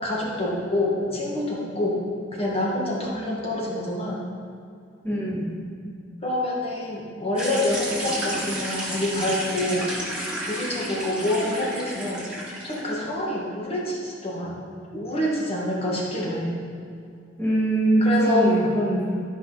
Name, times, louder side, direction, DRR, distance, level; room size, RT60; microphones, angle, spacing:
voice 1, 0.0-2.0 2.3-4.2 6.2-9.9 10.4-12.2 12.6-14.6 14.9-16.5 18.0-18.4, left 1 dB, 35° left, -4 dB, 1.9 m, -27 dB
voice 2, 5.0-5.5 17.4-19.2, right 1 dB, 10° left, -7 dB, 2.0 m, -22 dB
sound 1, 7.4-12.9, right 1 dB, 5° right, 2.1 m, -32 dB
13.0 x 5.8 x 4.1 m, 2.3 s
head